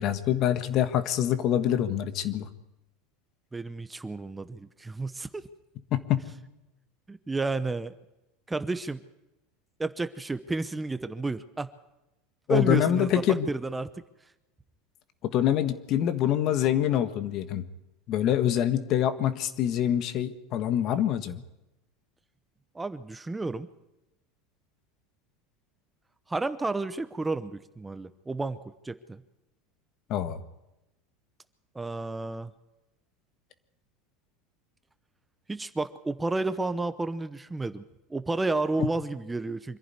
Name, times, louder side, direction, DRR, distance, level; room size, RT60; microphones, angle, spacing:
voice 1, 0.0-2.5 5.9-6.2 12.5-13.5 15.2-17.6 18.1-21.4 30.1-30.4, left 11 dB, 50° left, 10 dB, 1.5 m, -25 dB
voice 2, 3.5-5.5 7.1-7.9 8.5-9.0 9.8-11.7 12.5-13.9 22.7-23.7 26.3-28.6 28.8-29.2 31.7-32.5 35.5-37.8 38.1-39.8, right 3 dB, 10° right, 12 dB, 0.9 m, -31 dB
25.0 x 11.0 x 9.7 m, 0.96 s
supercardioid pair, 105°, 0 cm